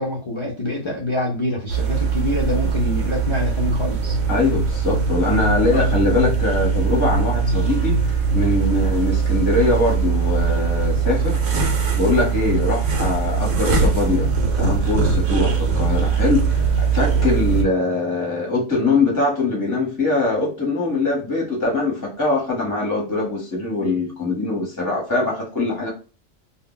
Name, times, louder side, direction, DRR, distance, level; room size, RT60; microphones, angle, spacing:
voice 1, 0.0-4.2 5.7-5.9, left 1 dB, 50° left, -3 dB, 0.3 m, -26 dB
sound 1, 1.7-17.6, right 5 dB, 65° right, 0.9 m, -21 dB
voice 2, 4.3-8.0 8.3-11.4 11.9-14.3 14.6-25.9, left 2 dB, 20° left, -2 dB, 0.8 m, -22 dB
2.2 x 2.1 x 3.7 m, 0.35 s
omnidirectional pair, 1.3 m